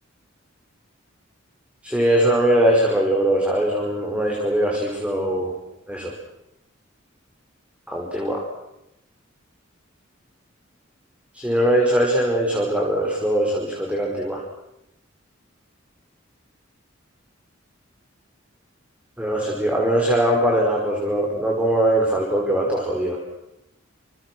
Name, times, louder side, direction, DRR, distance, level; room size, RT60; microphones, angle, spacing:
voice 1, 1.8-5.5 5.9-6.1 7.9-8.4 11.3-14.4 19.2-23.2, right 1 dB, 5° right, -1 dB, 5.1 m, -21 dB
28.5 x 28.0 x 6.3 m, 0.82 s
head